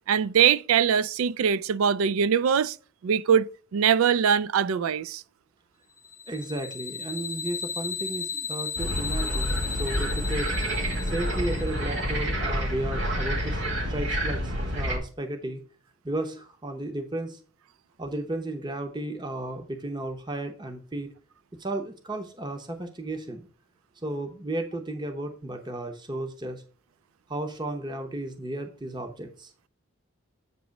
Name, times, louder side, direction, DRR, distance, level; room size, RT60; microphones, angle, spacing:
voice 1, 0.1-2.8 3.0-3.5 3.7-5.2, right 7 dB, 80° right, 0.4 m, -22 dB
sound 1, 6.0-12.0, left 5 dB, 15° left, 0.3 m, -35 dB
voice 2, 6.3-10.6 11.0-15.6 16.0-17.4 18.0-21.1 21.6-23.5 24.0-26.6 27.3-29.5, right 1 dB, 20° right, 0.7 m, -34 dB
sound 2, 8.8-15.0, equal, 55° right, 1.9 m, -28 dB
8.2 x 3.0 x 6.3 m
head